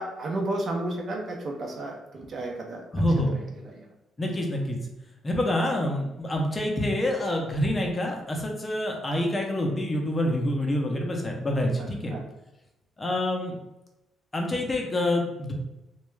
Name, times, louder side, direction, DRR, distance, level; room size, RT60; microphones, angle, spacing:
voice 1, 0.0-3.9 11.8-12.2, right 1 dB, 50° right, 1 dB, 0.6 m, -33 dB
voice 2, 2.9-3.4 4.2-4.8 5.2-12.1 13.0-13.6 14.3-15.5, left 1 dB, 25° left, 1 dB, 0.5 m, -27 dB
2.2 x 2.2 x 3.1 m, 0.93 s
cardioid pair, 90°, 0 cm